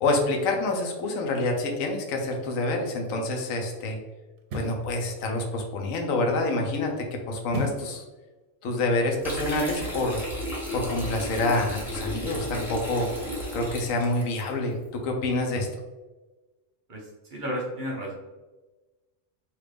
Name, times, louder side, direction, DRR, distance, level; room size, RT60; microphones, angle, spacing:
voice 1, 0.0-4.0 4.5-8.0 8.6-10.2 10.7-13.1 13.5-15.7, left 2 dB, 85° left, 2 dB, 1.0 m, -27 dB
sound 1, 4.4-4.9 7.5-8.0 8.4-8.5, right 1 dB, 85° right, 1.0 m, -33 dB
sound 2, 9.2-14.4, equal, ahead, 0.7 m, -34 dB
voice 2, 16.9-18.1, equal, 45° right, -2 dB, 0.8 m, -33 dB
3.1 x 2.4 x 3.3 m, 1.2 s
omnidirectional pair, 1.4 m